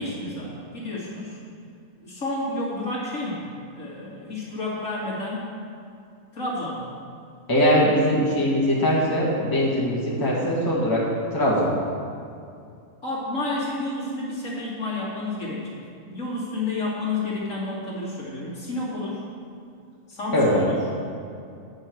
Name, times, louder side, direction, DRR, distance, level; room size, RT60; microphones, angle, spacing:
voice 1, 0.0-1.4 2.0-5.5 6.3-6.9 13.0-15.8 16.1-19.2 20.1-20.8, left 2 dB, 55° left, -7 dB, 2.8 m, -30 dB
voice 2, 7.5-11.1 11.3-11.7 20.3-20.8, equal, 15° left, -6 dB, 1.9 m, -21 dB
9.6 x 5.7 x 7.9 m, 2.5 s
omnidirectional pair, 1.6 m